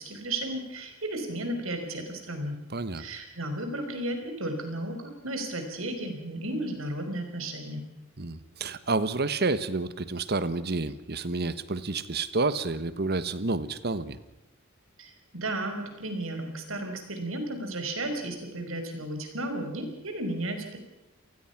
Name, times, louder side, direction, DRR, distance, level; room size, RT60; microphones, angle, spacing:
voice 1, 0.0-2.6 2.9-7.8 15.0-20.8, right 1 dB, 70° right, 5 dB, 5.4 m, -34 dB
voice 2, 2.7-3.0 8.2-14.2, right 3 dB, 50° right, 14 dB, 1.3 m, -29 dB
28.0 x 19.5 x 6.0 m, 0.95 s
head